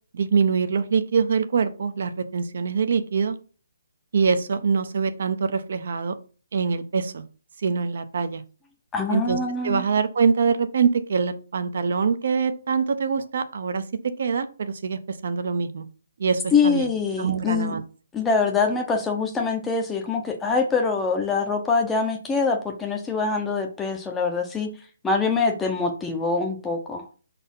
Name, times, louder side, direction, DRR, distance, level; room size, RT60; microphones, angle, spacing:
voice 1, 0.1-3.4 4.1-6.2 6.5-7.2 7.6-8.4 9.1-9.4 9.6-15.8 16.2-16.9 17.2-17.8, right 5 dB, 50° right, 10 dB, 0.7 m, -24 dB
voice 2, 8.9-9.8 16.5-17.7 18.1-24.7 25.0-27.0, left 4 dB, 5° left, 3 dB, 0.7 m, -24 dB
5.5 x 4.1 x 5.4 m, 0.38 s
hypercardioid pair, 175°, 0 cm